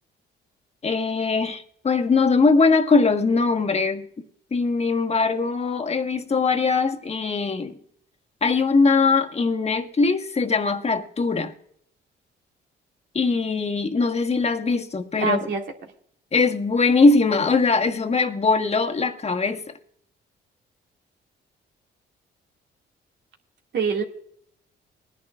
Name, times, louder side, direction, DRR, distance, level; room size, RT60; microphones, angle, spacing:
voice 1, 0.8-4.1 4.5-7.8 8.4-11.5 13.1-15.4 16.3-19.6, left 4 dB, 30° left, 1.5 m, -21 dB
voice 2, 15.2-15.6 23.7-24.0, right 5 dB, 65° right, 2.3 m, -24 dB
21.5 x 10.5 x 2.4 m
cardioid pair, 90°, 20 cm